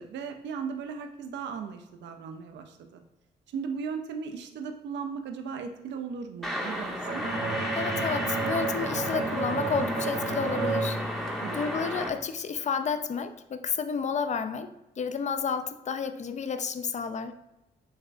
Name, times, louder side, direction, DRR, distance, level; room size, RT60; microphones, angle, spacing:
voice 1, 0.0-3.0 3.5-7.2 11.4-11.6, right 6 dB, 80° right, 6 dB, 0.4 m, -37 dB
sound 1, 6.4-12.1, equal, ahead, 0.7 m, -33 dB
Bowed string instrument, 7.0-12.0, right 3 dB, 55° right, 0.9 m, -32 dB
voice 2, 7.7-17.3, left 6 dB, 40° left, 10 dB, 0.4 m, -31 dB
6.4 x 2.2 x 2.5 m, 0.93 s
cardioid pair, 70°, 18 cm